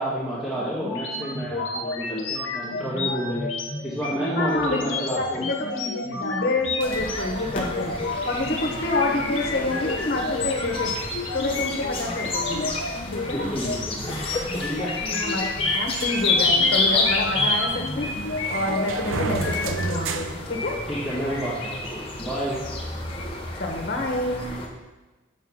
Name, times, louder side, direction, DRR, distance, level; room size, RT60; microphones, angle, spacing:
voice 1, 0.0-3.5 3.8-5.5 13.2-15.0 20.9-22.6, right 1 dB, 5° right, -10 dB, 1.7 m, -30 dB
sound 1, 0.8-20.0, left 3 dB, 80° left, 0.9 m, -32 dB
voice 2, 4.4-8.0 8.2-10.9 11.3-12.7 13.1-13.5 15.0-20.8 23.6-24.5, left 2 dB, 50° left, 0 dB, 1.2 m, -28 dB
sound 2, 6.8-24.7, left 2 dB, 30° left, 0.9 m, -29 dB
sound 3, 16.0-21.2, right 4 dB, 90° right, 0.6 m, -33 dB
7.0 x 3.7 x 6.2 m, 1.2 s
head